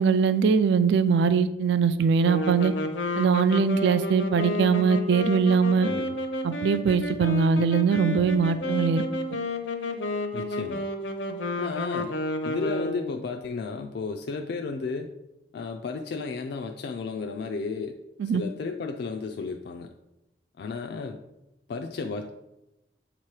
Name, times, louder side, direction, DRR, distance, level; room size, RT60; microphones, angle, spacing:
voice 1, 0.0-2.7 3.2-5.9 6.4-9.0 18.2-18.4, right 5 dB, 65° right, 12 dB, 0.3 m, -22 dB
sound 1, 2.2-13.2, left 1 dB, 75° left, 0.7 m, -31 dB
voice 2, 5.8-6.2 10.3-10.9 11.6-12.2 12.4-15.1 15.5-18.0 18.3-19.9 20.6-21.2 21.7-22.3, left 4 dB, 60° left, 4 dB, 0.4 m, -33 dB
7.3 x 3.0 x 4.7 m, 0.92 s
head